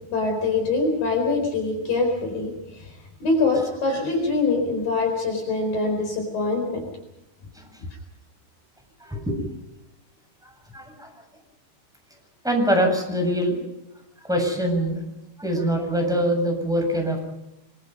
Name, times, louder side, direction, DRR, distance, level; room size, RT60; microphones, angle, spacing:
voice 1, 0.1-6.9, left 3 dB, 55° left, 3 dB, 6.0 m, -24 dB
voice 2, 9.0-9.4 10.7-11.1 12.4-13.6 14.3-15.0 15.4-17.2, equal, ahead, 2 dB, 7.2 m, -23 dB
26.0 x 24.0 x 5.4 m, 0.90 s
omnidirectional pair, 4.8 m